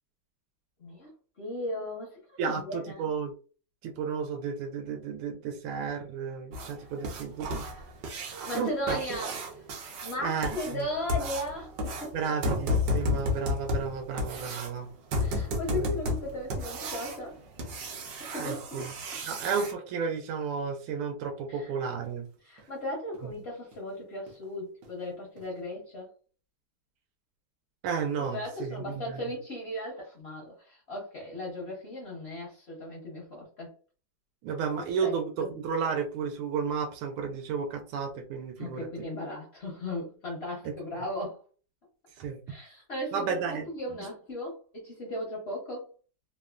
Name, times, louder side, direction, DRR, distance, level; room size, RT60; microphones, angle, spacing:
voice 1, 1.4-3.1 7.6-7.8 8.4-9.6 10.0-12.1 15.2-17.4 18.0-18.9 21.5-21.7 22.4-26.1 28.3-33.7 35.0-35.1 35.4-35.5 38.6-41.4 42.5-45.9, left 1 dB, 65° left, -2 dB, 0.6 m, -37 dB
voice 2, 2.4-3.3 3.8-7.6 8.5-9.0 10.2-10.8 12.1-14.9 15.7-16.0 18.4-18.9 19.3-22.3 23.2-23.3 27.8-29.2 34.4-38.9 42.2-42.4 43.1-43.6, right 6 dB, 90° right, 3 dB, 1.5 m, -32 dB
sound 1, 6.5-19.7 22.0-22.1 22.6-22.7 23.1-23.2 23.7-23.8 24.3-24.4 24.8-24.9 25.4-25.5, left 2 dB, 65° right, 1.2 m, -33 dB
3.4 x 2.1 x 2.3 m, 0.38 s
omnidirectional pair, 2.3 m